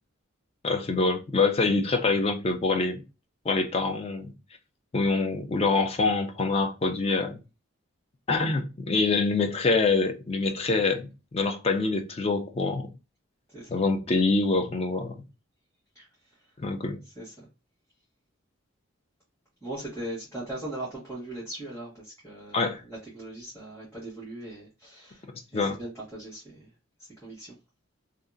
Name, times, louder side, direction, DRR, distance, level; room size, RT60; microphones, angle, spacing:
voice 1, 0.6-3.0 3.5-4.3 4.9-7.4 8.3-12.9 13.7-15.2 16.6-17.0 22.5-22.8 25.5-25.8, left 3 dB, 30° left, 0.4 m, -25 dB
voice 2, 17.1-17.5 19.6-25.2 25.5-26.7 27.2-27.5, right 1 dB, 15° left, 1.3 m, -39 dB
2.8 x 2.4 x 2.4 m
head